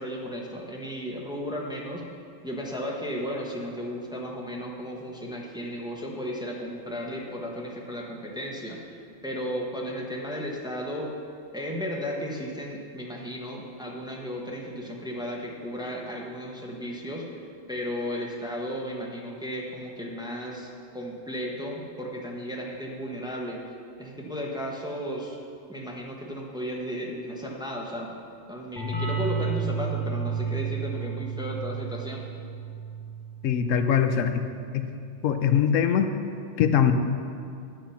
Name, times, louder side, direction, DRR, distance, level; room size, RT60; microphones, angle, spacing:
voice 1, 0.0-2.0 2.4-9.0 9.2-11.1 11.5-17.2 17.7-20.7 20.9-23.6 24.0-25.4 25.7-28.2 28.5-32.2, equal, 5° right, -2 dB, 1.0 m, -34 dB
sound 1, 28.8-34.2, right 5 dB, 20° left, 1.7 m, -32 dB
voice 2, 33.4-34.5 34.7-34.8 35.2-36.1 36.6-36.9, left 8 dB, 90° left, 7 dB, 1.0 m, -22 dB
8.9 x 7.5 x 5.7 m, 2.4 s
omnidirectional pair, 1.3 m